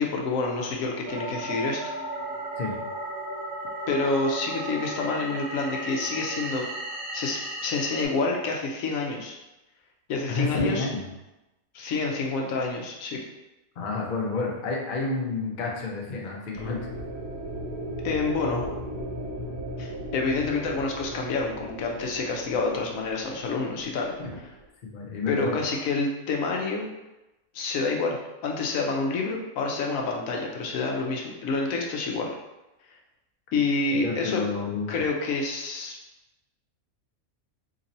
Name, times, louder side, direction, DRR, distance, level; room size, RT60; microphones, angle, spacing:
voice 1, 0.0-1.9 3.9-6.6 7.1-9.4 10.1-10.9 11.7-13.2 18.0-18.7 19.8-24.1 25.3-26.9 27.5-28.2 28.4-32.3 33.5-34.4 34.9-36.0, left 3 dB, 75° left, 0 dB, 1.0 m, -28 dB
sound 1, 1.1-8.1, right 1 dB, 60° right, 0.6 m, -35 dB
voice 2, 10.3-11.1 13.8-16.8 24.2-24.3 24.8-25.6 33.9-34.9, left 3 dB, 50° left, -1 dB, 0.6 m, -29 dB
sound 2, 16.5-24.7, right 1 dB, 85° right, 1.1 m, -37 dB
2.9 x 2.7 x 4.0 m, 1.0 s
omnidirectional pair, 1.5 m